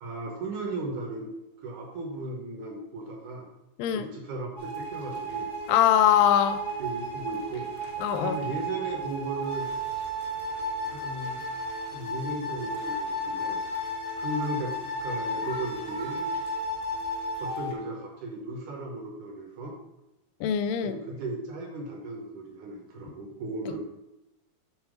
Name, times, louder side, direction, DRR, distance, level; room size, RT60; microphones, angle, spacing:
voice 1, 0.0-1.4 1.6-3.5 3.9-5.5 6.8-7.8 8.2-9.7 10.9-11.4 11.9-13.6 14.2-16.3 17.4-19.8 20.8-23.8, right 2 dB, 65° right, 0 dB, 2.1 m, -36 dB
sound 1, 4.6-17.7, equal, 45° left, 1.2 m, -33 dB
voice 2, 5.7-6.6 8.0-8.4 20.4-21.0, left 10 dB, 80° left, 10 dB, 2.1 m, -22 dB
8.1 x 4.0 x 5.1 m, 0.96 s
omnidirectional pair, 4.5 m